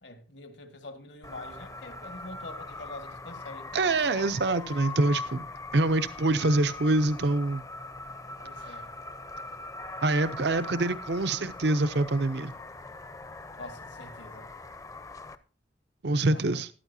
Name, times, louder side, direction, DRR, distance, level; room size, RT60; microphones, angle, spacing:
voice 1, 0.0-4.4 8.4-8.9 13.6-14.5 16.2-16.6, left 2 dB, 70° left, 1.8 m, -45 dB
sound 1, 1.2-15.4, left 3 dB, 20° left, 0.6 m, -41 dB
voice 2, 3.7-5.4 5.7-7.6 10.0-12.5 16.0-16.7, right 2 dB, 65° right, 0.7 m, -25 dB
14.0 x 12.0 x 2.7 m
head